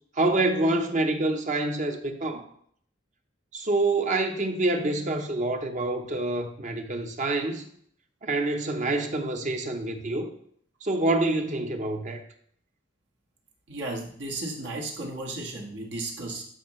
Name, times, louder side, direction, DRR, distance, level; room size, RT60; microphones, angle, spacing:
voice 1, 0.1-2.4 3.5-7.7 8.2-10.3 10.8-12.2, right 2 dB, 45° right, 0.9 m, -26 dB
voice 2, 13.7-16.4, right 2 dB, 75° right, 1.7 m, -34 dB
11.5 x 5.4 x 3.2 m
head